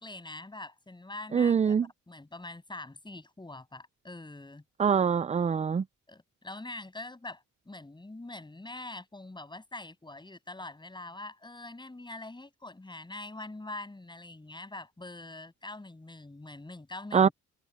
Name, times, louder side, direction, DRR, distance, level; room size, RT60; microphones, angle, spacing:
voice 1, 0.0-1.8 2.1-4.6 6.1-17.3, left 2 dB, 15° left, 7.7 m, -44 dB
voice 2, 1.3-1.9 4.8-5.8 17.1-17.3, right 7 dB, 25° right, 0.5 m, -24 dB
cardioid pair, 90°, 30 cm